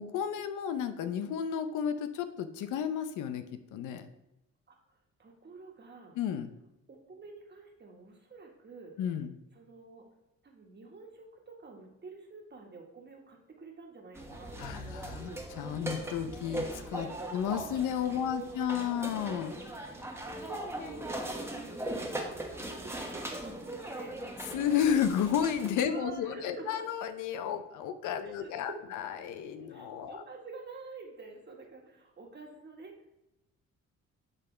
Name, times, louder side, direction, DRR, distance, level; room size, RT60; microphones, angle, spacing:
voice 1, 0.0-4.1 6.1-6.5 9.0-9.3 14.6-15.3 15.6-19.5 20.8-20.9 24.5-30.2, left 8 dB, 85° left, 10 dB, 0.7 m, -32 dB
voice 2, 5.2-6.2 6.9-8.9 9.5-10.0 10.4-15.4 17.2-17.3 18.2-19.0 20.2-24.2 25.8-26.9 28.2-28.5 29.7-32.9, right 3 dB, 35° right, 1 dB, 1.7 m, -48 dB
sound 1, 14.2-25.7, right 1 dB, 10° right, 1.2 m, -40 dB
11.0 x 3.7 x 3.3 m, 0.92 s
cardioid pair, 90°, 30 cm